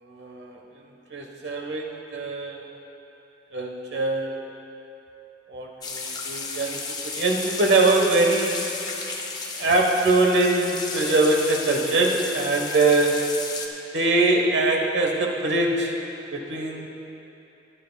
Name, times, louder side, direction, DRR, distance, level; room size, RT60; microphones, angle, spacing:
voice 1, 0.0-0.6 1.1-2.7 3.5-4.4 5.5-8.6 9.6-13.3 13.9-16.0 16.3-16.9, right 2 dB, 80° right, 1 dB, 1.2 m, -23 dB
sound 1, 5.8-13.7, left 4 dB, 25° left, 0.8 m, -33 dB
17.5 x 10.5 x 2.3 m, 2.9 s
head